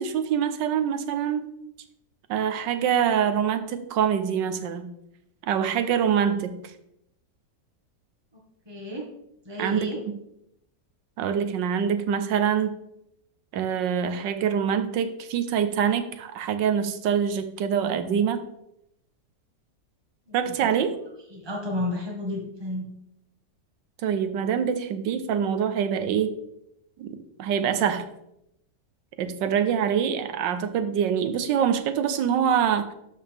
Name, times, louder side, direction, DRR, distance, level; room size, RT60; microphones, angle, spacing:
voice 1, 0.0-1.5 2.3-4.9 5.4-6.7 9.6-10.2 11.2-12.8 13.5-18.4 20.3-20.9 24.0-26.3 27.0-27.1 27.4-28.1 29.2-32.9, right 8 dB, 90° right, 9 dB, 1.5 m, -25 dB
voice 2, 8.7-9.0 9.5-10.0 20.3-20.4 21.3-22.9, left 1 dB, 15° right, -2 dB, 1.8 m, -31 dB
12.5 x 5.4 x 3.5 m, 0.81 s
omnidirectional pair, 1.9 m